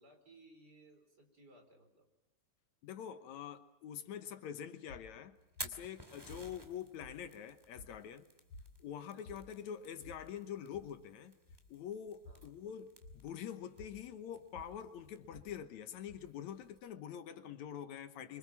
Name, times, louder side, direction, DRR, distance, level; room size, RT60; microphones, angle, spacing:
voice 1, 0.0-2.1 6.3-6.6 9.1-9.4 12.3-12.5, right 1 dB, 30° right, 4 dB, 4.9 m, -62 dB
voice 2, 2.8-5.4 5.6-8.2 8.8-11.4 11.7-18.4, left 9 dB, 75° left, 10 dB, 2.4 m, -45 dB
sound 1, 4.9-16.9, left 2 dB, 60° left, 4.4 m, -58 dB
Fire, 5.4-16.8, right 1 dB, 10° right, 2.2 m, -55 dB
26.0 x 25.5 x 7.3 m, 0.88 s
omnidirectional pair, 3.3 m